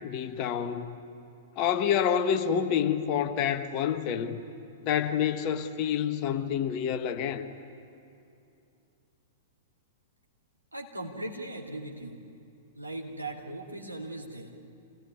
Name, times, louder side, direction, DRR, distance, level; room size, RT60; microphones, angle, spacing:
voice 1, 0.0-1.0 1.5-4.4 4.8-7.5, left 8 dB, 35° left, 1.4 m, -28 dB
voice 2, 10.7-12.2 12.7-14.5, right 1 dB, 85° right, 2.9 m, -39 dB
27.5 x 18.0 x 9.7 m
figure-of-eight pair, 105°, 0 cm